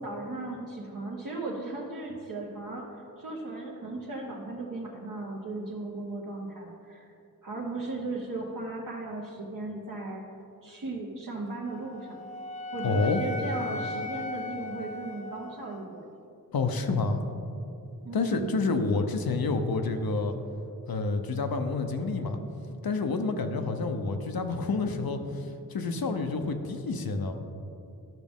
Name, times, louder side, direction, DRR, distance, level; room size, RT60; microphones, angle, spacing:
voice 1, 0.0-7.1 7.4-10.2 10.6-12.2 12.7-16.1 18.0-18.6, right 2 dB, 60° right, -5 dB, 1.0 m, -36 dB
Wind instrument woodwind instrument, 11.6-15.8, left 2 dB, 20° left, 0.5 m, -37 dB
voice 2, 12.8-13.2 16.5-17.2 18.1-20.4 20.9-22.4 22.8-27.3, left 3 dB, 80° left, 6 dB, 0.7 m, -28 dB
12.0 x 6.1 x 3.6 m, 2.7 s
wide cardioid pair, 95°, 36 cm